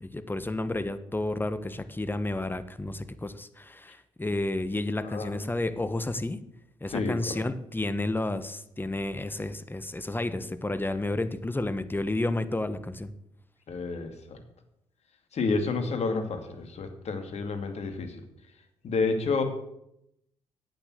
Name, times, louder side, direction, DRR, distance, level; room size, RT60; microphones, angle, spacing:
voice 1, 0.0-6.4 6.8-13.1, left 2 dB, 15° left, 12 dB, 1.3 m, -31 dB
voice 2, 5.0-5.5 6.9-7.4 13.7-14.4 15.3-18.2 18.8-19.4, left 4 dB, 60° left, 7 dB, 2.4 m, -30 dB
10.5 x 8.9 x 7.7 m, 0.80 s
hypercardioid pair, 50°, 13 cm